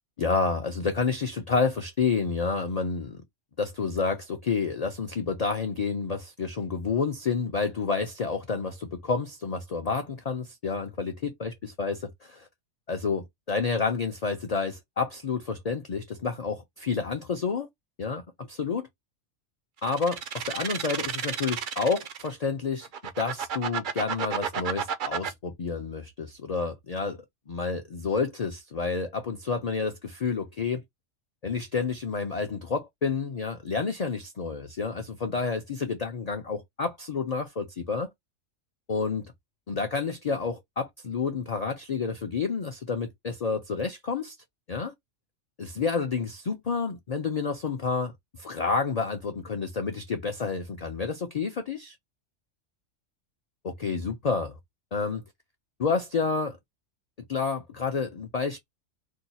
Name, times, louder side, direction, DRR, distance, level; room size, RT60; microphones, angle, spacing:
voice 1, 0.2-3.2 3.6-12.5 12.9-17.7 18.0-18.2 18.5-18.9 19.8-22.9 23.2-27.2 27.5-30.8 31.4-38.1 38.9-39.3 39.7-44.4 44.7-44.9 45.6-48.1 48.4-52.0 53.6-54.6 54.9-55.2 55.8-56.6 57.3-58.6, left 5 dB, 45° left, 0.5 m, -29 dB
sound 1, 19.8-22.3 22.8-25.3, right 7 dB, 55° right, 0.6 m, -31 dB
2.7 x 2.2 x 4.0 m
omnidirectional pair, 1.3 m